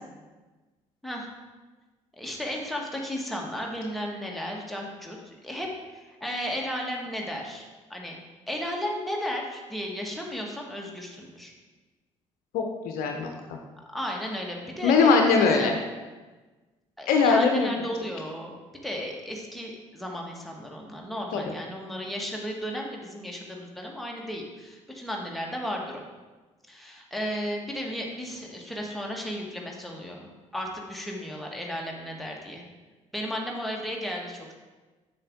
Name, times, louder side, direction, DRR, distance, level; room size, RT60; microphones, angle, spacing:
voice 1, 2.2-8.2 8.5-11.5 13.9-15.7 17.0-18.5 18.8-26.0 26.7-32.6 33.1-34.5, equal, ahead, -1 dB, 1.6 m, -34 dB
voice 2, 12.5-13.6 14.8-15.7 17.1-17.7 21.3-21.4, left 4 dB, 65° left, 3 dB, 0.7 m, -21 dB
7.5 x 6.0 x 3.7 m, 1.2 s
figure-of-eight pair, 45°, 16 cm